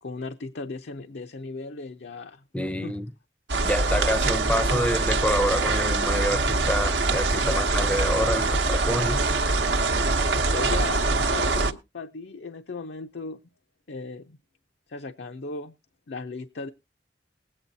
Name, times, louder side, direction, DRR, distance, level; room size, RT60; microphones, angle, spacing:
voice 1, 0.0-2.4 2.8-2.9 7.4-7.6 10.5-11.0 11.3-13.4 13.9-14.4 14.9-15.7 16.1-16.7, left 3 dB, 75° left, 0.6 m, -36 dB
voice 2, 2.5-3.1 3.6-9.2, equal, 5° left, 0.5 m, -27 dB
sound 1, 3.5-11.7, right 3 dB, 80° right, 0.8 m, -24 dB
20.0 x 8.7 x 2.7 m
head